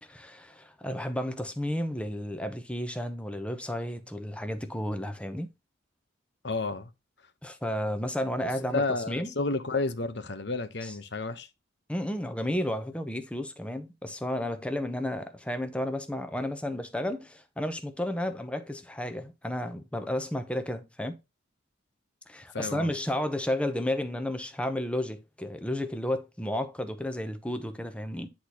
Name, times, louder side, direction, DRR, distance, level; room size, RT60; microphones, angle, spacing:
voice 1, 0.0-5.5 7.4-9.3 10.8-11.0 11.9-21.2 22.3-28.3, left 1 dB, 5° left, 0.9 m, -32 dB
voice 2, 6.4-6.9 8.7-11.5 22.5-22.9, left 3 dB, 60° left, 1.0 m, -31 dB
10.0 x 4.2 x 3.0 m
head